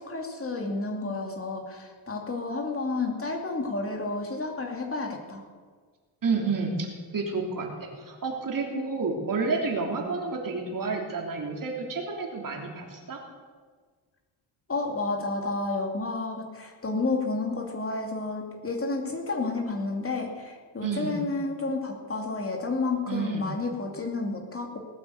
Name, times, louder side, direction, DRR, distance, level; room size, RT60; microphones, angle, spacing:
voice 1, 0.0-5.4 14.7-24.8, left 3 dB, 30° left, 1 dB, 2.6 m, -31 dB
voice 2, 6.2-7.7 8.0-13.2 20.8-21.2 23.1-23.5, right 4 dB, 45° right, 1 dB, 3.3 m, -30 dB
18.5 x 9.0 x 8.1 m, 1.5 s
cardioid pair, 115°, 44 cm